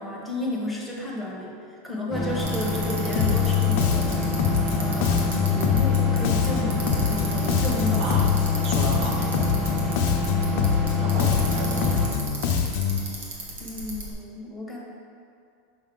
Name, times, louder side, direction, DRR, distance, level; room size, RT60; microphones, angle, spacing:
voice 1, 0.0-1.6 1.8-4.3 4.7-8.1 13.6-14.8, left 1 dB, ahead, -4 dB, 1.0 m, -32 dB
sound 1, 2.1-12.1, left 2 dB, 20° right, 1.6 m, -27 dB
Bicycle, 2.4-14.1, right 1 dB, 90° right, 1.4 m, -36 dB
Bass guitar, 3.2-13.0, left 8 dB, 60° left, 0.6 m, -24 dB
voice 2, 8.6-9.5 11.0-12.2, right 3 dB, 40° right, 1 dB, 0.5 m, -33 dB
6.4 x 5.1 x 3.8 m, 2.4 s
supercardioid pair, 155°, 0 cm